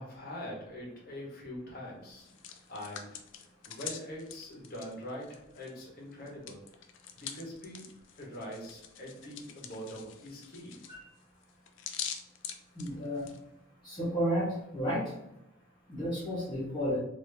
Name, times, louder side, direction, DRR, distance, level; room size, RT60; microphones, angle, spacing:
voice 1, 0.0-2.3 2.7-3.2 3.7-6.6 7.2-7.9 8.2-10.8, equal, 50° left, -4 dB, 1.2 m, -43 dB
Hands, 2.1-5.8 6.1-13.4, left 8 dB, 75° left, 0.4 m, -44 dB
voice 2, 12.7-13.3 13.8-15.1 15.9-17.0, equal, 25° left, -8 dB, 1.4 m, -32 dB
3.4 x 2.8 x 2.8 m, 0.86 s
head